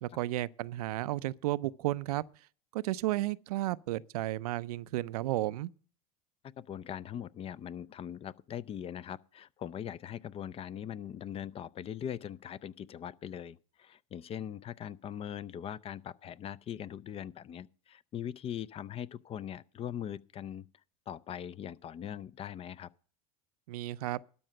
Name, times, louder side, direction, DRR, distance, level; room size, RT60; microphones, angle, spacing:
voice 1, 0.0-2.2 2.7-5.7 23.7-24.2, right 16 dB, 85° right, 0.5 m, -33 dB
voice 2, 6.6-20.7 21.1-22.9, left 9 dB, 30° left, 0.4 m, -41 dB
12.5 x 5.7 x 7.6 m
supercardioid pair, 105°, 19 cm